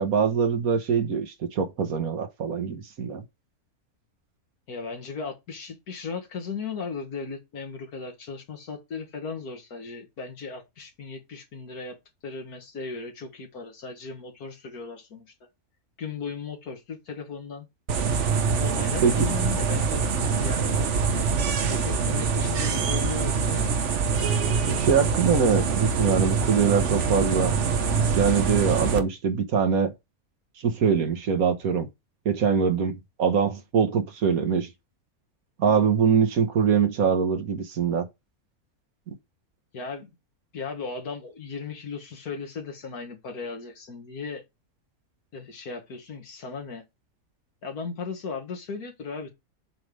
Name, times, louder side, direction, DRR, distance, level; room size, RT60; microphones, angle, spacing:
voice 1, 0.0-3.2 19.0-19.1 24.8-27.5 28.1-29.9 30.6-31.9 32.2-34.7 35.6-38.1 39.1-39.2, right 6 dB, 70° right, 1.6 m, -23 dB
voice 2, 4.7-12.0 12.2-15.3 16.0-17.7 18.6-20.0 20.4-20.9 21.6-23.7 39.7-40.1 40.5-44.4 45.3-46.8 47.6-49.3, left 5 dB, 85° left, 2.2 m, -36 dB
sound 1, 17.9-29.0, right 5 dB, 55° right, 1.2 m, -24 dB
7.6 x 3.3 x 5.3 m
omnidirectional pair, 1.6 m